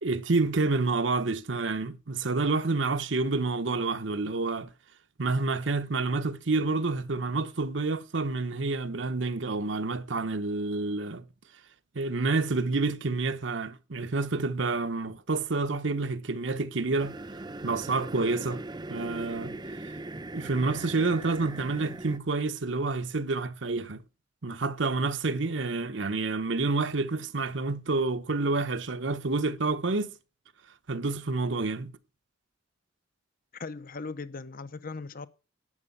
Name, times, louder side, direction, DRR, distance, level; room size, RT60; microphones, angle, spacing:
voice 1, 0.0-4.7 5.2-11.2 11.9-17.1 17.6-18.6 18.9-19.5 20.3-24.0 24.4-30.1 30.9-31.9, right 3 dB, 75° right, 1.0 m, -28 dB
sound 1, 17.0-22.2, right 2 dB, 25° right, 0.7 m, -40 dB
voice 2, 33.5-35.3, left 4 dB, 50° left, 0.8 m, -38 dB
11.0 x 8.8 x 5.4 m
head